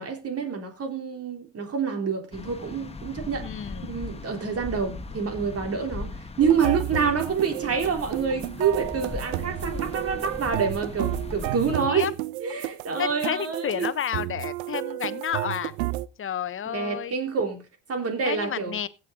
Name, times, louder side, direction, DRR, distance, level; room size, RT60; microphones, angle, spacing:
voice 1, 0.0-3.5 3.8-6.1 6.4-12.1 12.4-13.9 16.7-17.6 17.9-18.8, right 6 dB, 45° right, 3.5 m, -27 dB
sound 1, 2.3-11.8, left 3 dB, 20° left, 1.4 m, -38 dB
voice 2, 3.4-4.0 11.9-12.1 13.0-15.8 16.2-17.2 18.2-18.9, left 9 dB, 40° left, 1.0 m, -31 dB
sound 2, 6.4-16.1, right 19 dB, 80° right, 0.6 m, -32 dB
16.0 x 8.2 x 3.9 m
hypercardioid pair, 65°, 34 cm